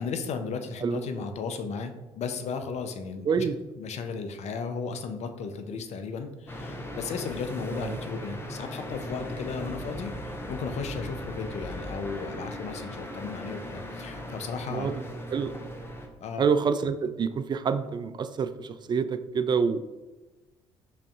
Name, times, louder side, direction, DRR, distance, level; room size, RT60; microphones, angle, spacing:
voice 1, 0.0-3.3 3.8-10.1 10.5-14.9 16.2-16.5, left 5 dB, 55° left, 7 dB, 0.5 m, -35 dB
voice 2, 3.2-3.6 7.7-8.0 14.7-14.9 15.3-15.5 16.4-19.9, right 6 dB, 35° right, 11 dB, 0.3 m, -27 dB
sound 1, 6.5-16.1, equal, 15° left, 0.7 m, -38 dB
5.4 x 2.6 x 2.4 m, 1.1 s
hypercardioid pair, 55°, 14 cm